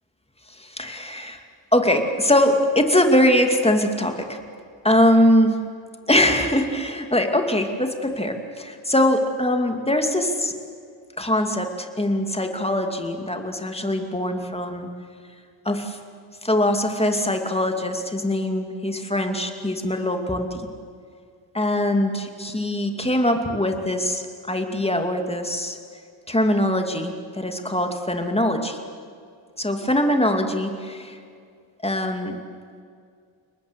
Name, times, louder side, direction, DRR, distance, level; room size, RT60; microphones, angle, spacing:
voice 1, 0.5-1.4 1.7-4.4 4.8-5.6 6.1-10.6 11.2-14.9 15.6-16.0 16.4-20.7 21.5-25.8 26.3-28.8 29.6-31.2 31.8-32.4, left 1 dB, 10° left, 5 dB, 2.6 m, -22 dB
30.0 x 20.0 x 8.3 m, 2.2 s
wide cardioid pair, 110°, 47 cm